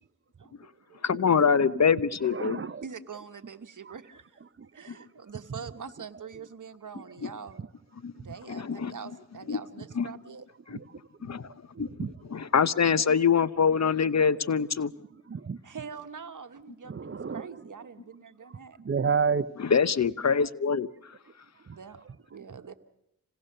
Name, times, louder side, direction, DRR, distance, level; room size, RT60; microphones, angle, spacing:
voice 1, 0.4-1.4 2.8-7.6 8.1-10.5 12.3-12.4 15.6-18.8 21.7-22.0 22.3-22.7, right 6 dB, 60° right, 1.3 m, -44 dB
voice 2, 1.0-2.6 7.2-7.3 8.0-8.1 8.5-8.9 9.5-9.6 9.9-10.1 10.7-10.8 11.3-11.4 11.8-11.9 12.3-14.9 19.6-21.1, left 6 dB, 50° left, 0.8 m, -24 dB
voice 3, 2.3-2.8 3.8-3.9 4.6-5.0 7.0-7.1 9.8-9.9 10.7-11.0 11.7-12.1 15.3-15.6 16.9-17.7 18.8-19.5 21.7-21.8, right 6 dB, 40° right, 0.7 m, -31 dB
26.5 x 17.5 x 6.7 m
cardioid pair, 50°, 34 cm